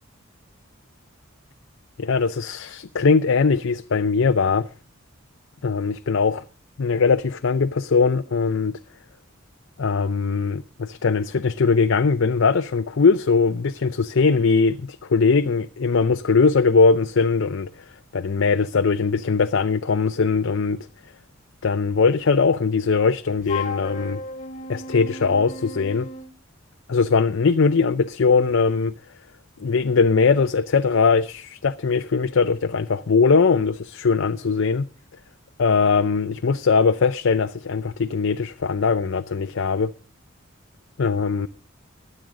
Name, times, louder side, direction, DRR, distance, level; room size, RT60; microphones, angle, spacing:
voice 1, 2.0-4.7 5.6-6.4 6.8-8.7 9.8-17.7 18.1-20.8 21.6-24.2 24.7-26.1 26.9-28.9 29.6-34.9 35.6-39.9 41.0-41.5, left 4 dB, 70° left, 0.5 m, -20 dB
Wind instrument woodwind instrument, 23.4-26.3, left 3 dB, 40° left, 1.6 m, -34 dB
22.0 x 7.7 x 3.8 m
head